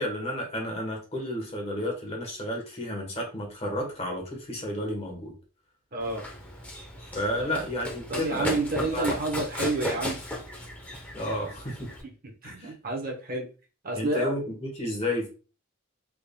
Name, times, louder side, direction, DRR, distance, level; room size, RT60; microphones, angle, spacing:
voice 1, 0.0-5.3 7.1-8.6 8.9-9.2 11.1-11.9 12.4-12.7 13.9-15.3, left 1 dB, 30° left, -1 dB, 1.1 m, -31 dB
voice 2, 5.9-6.3 7.4-7.5 8.1-10.2 11.3-11.4 12.4-13.5 13.8-14.3, right 2 dB, 40° right, 1 dB, 0.8 m, -29 dB
Run, 6.0-12.0, left 1 dB, 5° left, 0.6 m, -36 dB
3.5 x 3.5 x 2.2 m, 0.35 s
head